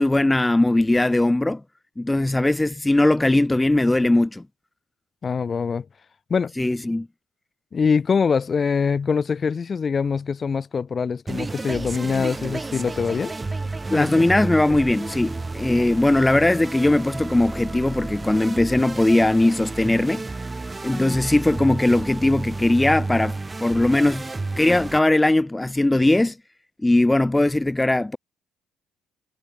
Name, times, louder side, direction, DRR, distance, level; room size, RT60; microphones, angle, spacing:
voice 1, 0.0-1.6 2.0-4.4 6.6-7.1 13.9-20.3 20.8-24.3 24.6-26.4 26.8-28.2, left 2 dB, 10° left, 3.6 m, -19 dB
voice 2, 5.2-5.9 6.3-6.5 7.7-13.3 13.9-14.2, left 5 dB, 40° left, 5.3 m, -23 dB
sound 1, 11.3-25.0, right 3 dB, 20° right, 5.1 m, -31 dB
supercardioid pair, 70°, 0 cm